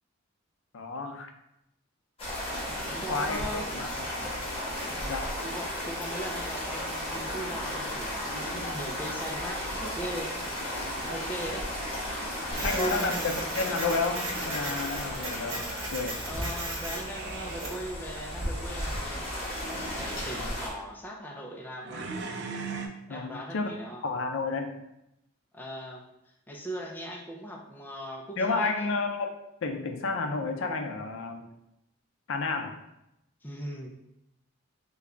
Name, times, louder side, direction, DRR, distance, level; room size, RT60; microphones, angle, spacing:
voice 1, 0.7-1.3 3.1-3.9 4.2-4.3 5.1-5.3 12.6-16.2 20.4-20.5 23.1-23.7 24.0-24.7 28.4-29.3 29.6-31.5 32.3-32.8, left 3 dB, 65° left, 4 dB, 0.4 m, -31 dB
sound 1, 2.2-20.7, left 1 dB, 30° left, 1.0 m, -34 dB
voice 2, 2.9-3.7 5.0-10.3 10.8-11.7 12.5-13.2 16.2-19.3 19.9-22.1 23.1-24.0 25.5-26.1 26.5-28.9 33.4-33.9, right 1 dB, 10° left, -1 dB, 0.4 m, -39 dB
Printer, 12.5-17.9, right 2 dB, 85° right, 0.9 m, -37 dB
sound 2, 17.0-17.7 18.4-18.9 19.5-20.2 21.8-22.9, right 4 dB, 55° right, 0.4 m, -40 dB
3.3 x 2.3 x 3.7 m, 0.84 s
head